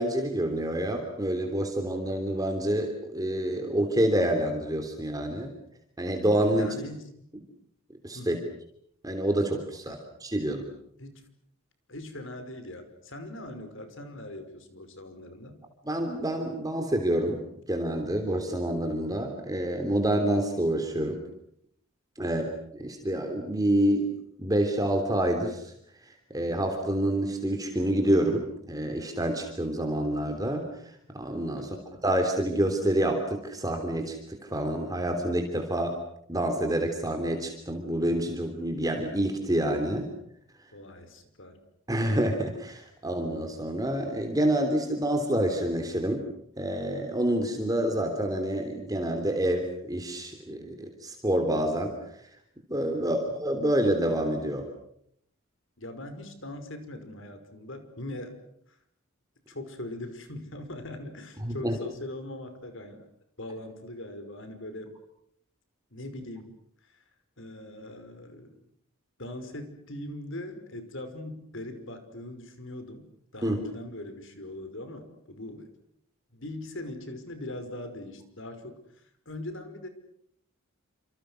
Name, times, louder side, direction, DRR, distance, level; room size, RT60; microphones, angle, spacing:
voice 1, 0.0-5.5 6.0-6.7 8.0-8.4 9.0-10.7 15.9-17.4 17.7-21.2 22.2-22.4 22.7-24.1 24.4-25.7 26.3-30.6 31.1-31.8 32.0-36.0 36.3-40.1 41.9-46.2 46.6-51.9 52.7-54.7 61.4-61.8 73.4-73.6, right 1 dB, 15° right, 4 dB, 3.3 m, -27 dB
voice 2, 6.5-7.0 8.1-8.5 9.9-10.0 11.0-11.2 11.9-15.6 22.2-22.5 31.5-31.9 40.7-41.6 52.9-53.2 55.8-58.4 58.7-58.8 59.5-63.1 63.4-64.9 65.9-66.5 66.8-67.0 67.4-68.6 69.2-73.1 73.3-75.7 76.3-78.8 79.3-79.9, left 1 dB, 65° left, 9 dB, 5.4 m, -41 dB
29.0 x 27.5 x 6.5 m, 0.70 s
head